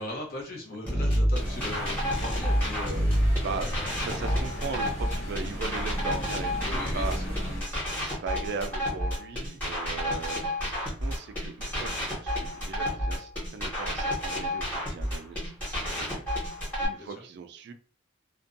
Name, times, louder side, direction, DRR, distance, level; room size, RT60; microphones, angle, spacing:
voice 1, 0.0-3.9 6.6-7.3 16.9-17.1, left 2 dB, 50° left, 0 dB, 0.8 m, -39 dB
sound 1, 0.9-16.9, equal, 10° left, 1.2 m, -29 dB
sound 2, 1.4-7.6, equal, 75° left, 1.1 m, -35 dB
voice 2, 3.4-7.1 7.9-16.2 16.8-17.7, right 4 dB, 55° right, 8 dB, 0.3 m, -38 dB
2.5 x 2.2 x 2.5 m, 0.41 s
head